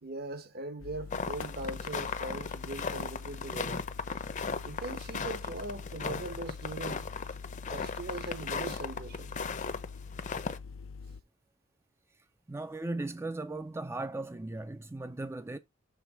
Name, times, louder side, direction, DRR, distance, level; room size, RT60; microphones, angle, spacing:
voice 1, 0.0-3.8 4.6-7.1 7.7-9.4, right 2 dB, 55° right, 1.0 m, -40 dB
sound 1, 0.8-11.2, left 5 dB, 85° left, 0.5 m, -45 dB
sound 2, 1.1-9.9 10.1-10.6, left 5 dB, 40° left, 0.7 m, -37 dB
voice 2, 12.5-15.6, right 2 dB, 15° right, 0.4 m, -37 dB
7.0 x 3.6 x 5.8 m
head